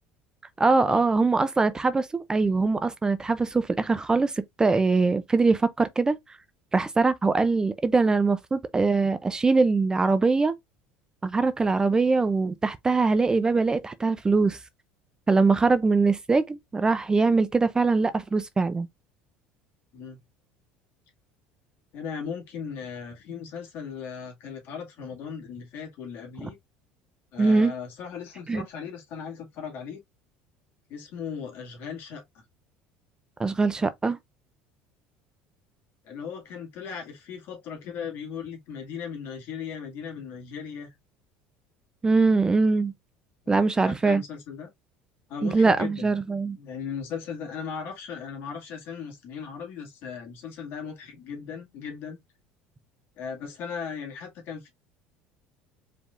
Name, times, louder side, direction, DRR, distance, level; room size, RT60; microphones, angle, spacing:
voice 1, 0.6-6.2 6.7-10.5 11.2-14.6 15.3-18.9 27.4-27.7 28.5-28.6 33.4-34.2 42.0-42.9 43.5-44.2 45.4-46.6, right 3 dB, 15° right, 0.5 m, -22 dB
voice 2, 21.9-26.6 27.3-30.0 30.9-32.4 36.0-40.9 43.5-44.7 45.3-46.2 46.6-52.2 53.2-54.7, left 6 dB, 60° left, 2.0 m, -37 dB
4.7 x 3.4 x 2.5 m
supercardioid pair, 105°, 4 cm